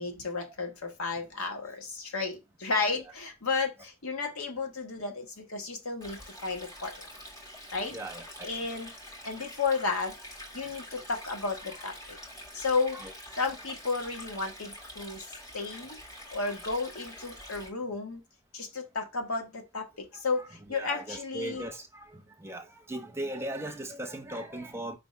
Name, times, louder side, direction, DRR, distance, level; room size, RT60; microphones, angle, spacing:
voice 1, 0.0-7.1 7.7-8.0 8.4-8.9 9.2-12.2 12.5-13.0 13.4-15.3 15.5-16.0 16.3-18.2 18.5-21.6, left 4 dB, 80° left, 1.6 m, -33 dB
Stream, 6.0-17.7, equal, 15° left, 2.2 m, -46 dB
voice 2, 7.9-8.5 9.4-9.5 9.9-10.0 12.9-13.1 16.4-16.5 20.1-25.0, right 1 dB, 10° right, 1.0 m, -39 dB
5.1 x 3.6 x 5.2 m
head